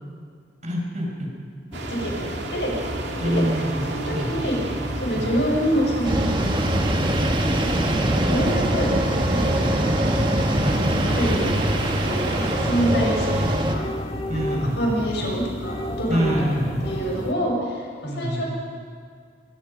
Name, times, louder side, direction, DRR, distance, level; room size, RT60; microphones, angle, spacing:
voice 1, 0.6-1.3 3.2-3.8 4.1-4.3 5.2-5.3 7.9-8.2 10.6-10.8 14.3-14.8 16.1-16.9 18.0-18.4, equal, 45° right, -1 dB, 5.4 m, -26 dB
sound 1, 1.7-17.3, equal, 35° left, 1.8 m, -32 dB
sound 2, 1.7-13.6, right 2 dB, 75° right, 2.5 m, -33 dB
voice 2, 1.9-2.7 3.2-4.6 5.0-6.2 7.5-7.7 8.0-9.9 11.0-11.7 12.0-13.9 14.3-16.3 16.8-18.4, equal, 75° left, -1 dB, 6.5 m, -27 dB
sound 3, 6.0-13.8, right 1 dB, 30° right, 1.7 m, -23 dB
26.5 x 18.5 x 5.4 m, 2.1 s
head